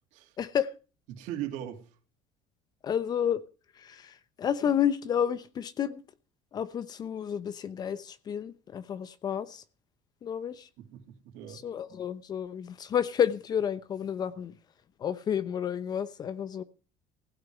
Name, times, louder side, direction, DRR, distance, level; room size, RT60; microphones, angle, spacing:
voice 1, 0.4-0.7 2.8-3.4 3.8-6.0 6.5-9.6 10.2-10.7 11.5-14.5 15.0-16.6, left 8 dB, 35° left, 0.8 m, -30 dB
voice 2, 1.1-1.8 10.8-11.6, right 11 dB, 70° right, 3.0 m, -39 dB
16.0 x 6.6 x 9.8 m
cardioid pair, 160°, 13 cm